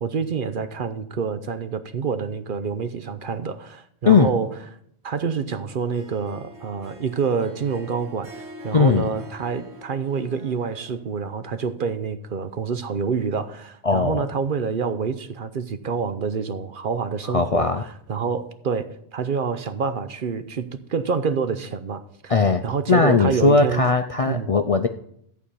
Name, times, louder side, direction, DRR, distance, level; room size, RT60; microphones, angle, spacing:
voice 1, 0.0-4.5 5.0-17.7 18.1-22.3 22.6-23.8 24.2-24.5, right 5 dB, 55° right, 0.8 m, -27 dB
Harp, 5.8-11.1, left 1 dB, 85° right, 2.1 m, -44 dB
voice 2, 8.7-9.1 13.8-14.3 17.3-17.8 22.3-22.6 22.9-24.9, left 4 dB, 45° left, 0.5 m, -18 dB
14.0 x 4.7 x 8.5 m
omnidirectional pair, 1.1 m